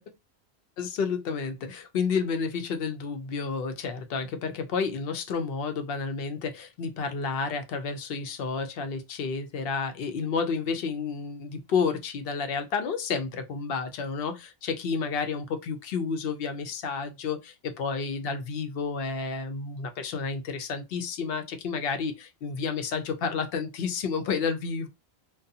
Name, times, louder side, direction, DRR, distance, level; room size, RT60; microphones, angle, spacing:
voice 1, 0.8-24.9, left 5 dB, 70° left, 0.7 m, -30 dB
2.3 x 2.2 x 2.7 m
omnidirectional pair, 1.1 m